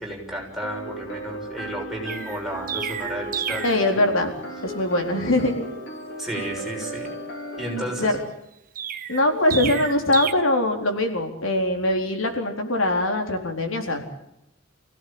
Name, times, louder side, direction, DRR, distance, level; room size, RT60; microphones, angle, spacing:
voice 1, 0.0-3.6 6.2-7.1 7.6-8.1, right 1 dB, ahead, -2 dB, 6.6 m, -32 dB
sound 1, 0.6-8.2, right 1 dB, 60° left, 4.8 m, -35 dB
Chirp tweet, 2.1-3.8 8.8-10.3, right 8 dB, 45° right, 1.5 m, -31 dB
voice 2, 3.6-4.3 4.6-5.6 8.0-8.1 9.1-14.0, left 1 dB, 85° left, 4 dB, 4.1 m, -22 dB
27.5 x 17.0 x 8.8 m, 0.82 s
head